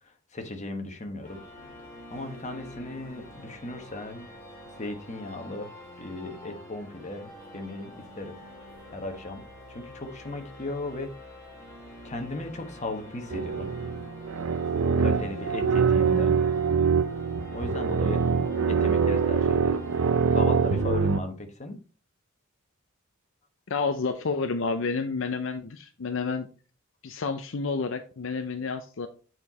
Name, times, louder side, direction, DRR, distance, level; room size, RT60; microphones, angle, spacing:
voice 1, 0.0-1.4 2.1-4.3 4.8-8.4 8.9-9.4 9.7-11.3 12.0-13.7 15.0-16.3 17.5-18.2 18.6-19.8 20.3-21.8, left 2 dB, 35° left, 5 dB, 1.3 m, -36 dB
sound 1, 1.2-20.8, left 1 dB, 15° left, 3.9 m, -46 dB
sound 2, 13.3-21.2, right 6 dB, 80° right, 0.5 m, -24 dB
voice 2, 23.7-26.5 27.0-29.1, left 4 dB, 65° left, 7 dB, 0.6 m, -30 dB
8.7 x 4.6 x 4.1 m, 0.37 s
head